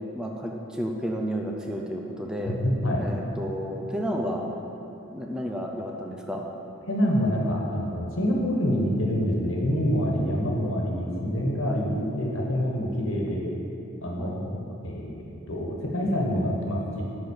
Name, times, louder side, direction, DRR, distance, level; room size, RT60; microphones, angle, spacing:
voice 1, 0.0-2.6 2.9-4.4 5.1-6.4 11.6-11.8 14.2-14.4, equal, 5° right, 0 dB, 0.6 m, -32 dB
voice 2, 2.4-3.0 6.9-13.5 14.0-17.0, equal, 75° left, -2 dB, 1.5 m, -26 dB
10.0 x 4.0 x 6.6 m, 2.9 s
head